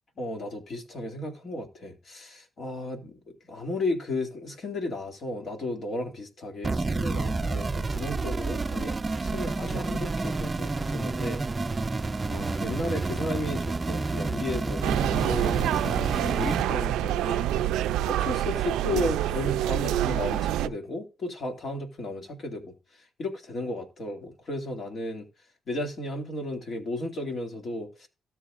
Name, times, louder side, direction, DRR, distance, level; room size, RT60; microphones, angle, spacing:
voice 1, 0.2-3.1 3.5-11.4 12.3-17.5 18.1-25.3 25.7-28.1, left 1 dB, 50° left, 2.3 m, -34 dB
sound 1, 6.6-16.6, right 3 dB, 25° right, 0.5 m, -29 dB
sound 2, 14.8-20.7, right 12 dB, 90° right, 0.4 m, -27 dB
17.5 x 7.3 x 2.5 m
cardioid pair, 90°, 0 cm